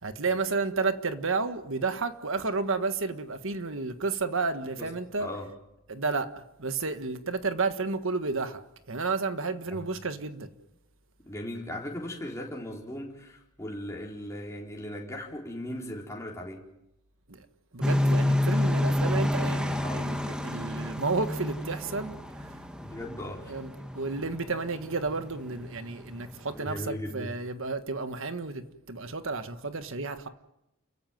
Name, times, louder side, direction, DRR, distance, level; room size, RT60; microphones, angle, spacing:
voice 1, 0.0-5.3 5.9-8.6 8.9-10.5 17.3-17.5 17.7-22.6 23.5-30.3, right 3 dB, 60° right, 1.5 m, -31 dB
voice 2, 5.2-5.5 9.7-9.9 11.3-16.6 19.8-20.1 22.8-23.5 26.5-27.3, left 1 dB, 15° left, 4.3 m, -38 dB
sound 1, 17.8-26.6, left 1 dB, 5° right, 1.5 m, -30 dB
30.0 x 15.5 x 9.4 m
head